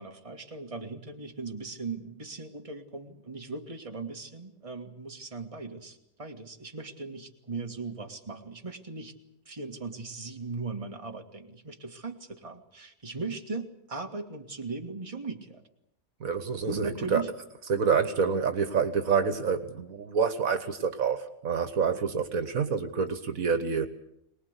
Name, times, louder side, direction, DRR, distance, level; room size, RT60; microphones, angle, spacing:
voice 1, 0.0-9.1 9.5-15.6 16.7-17.3, right 3 dB, 25° right, 3 dB, 2.0 m, -38 dB
voice 2, 16.2-17.2 17.7-23.9, right 6 dB, 70° right, 10 dB, 1.7 m, -27 dB
23.0 x 20.5 x 8.2 m, 0.77 s
omnidirectional pair, 1.5 m